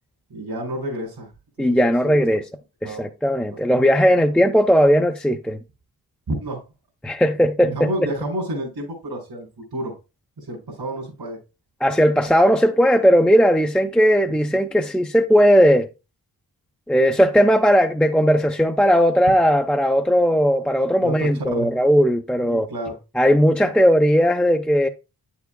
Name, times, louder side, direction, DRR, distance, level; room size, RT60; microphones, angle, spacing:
voice 1, 0.3-1.3 1.6-2.1 2.8-3.1 3.5-3.6 4.1-4.3 6.3-6.6 7.6-9.9 10.4-11.4 21.0-21.7 22.4-23.0, right 1 dB, 80° right, 3.9 m, -30 dB
voice 2, 1.6-2.4 2.8-5.6 7.0-7.9 11.8-15.9 16.9-22.7 23.2-24.9, equal, 5° left, 0.6 m, -17 dB
9.1 x 7.1 x 2.2 m
wide cardioid pair, 110°, 38 cm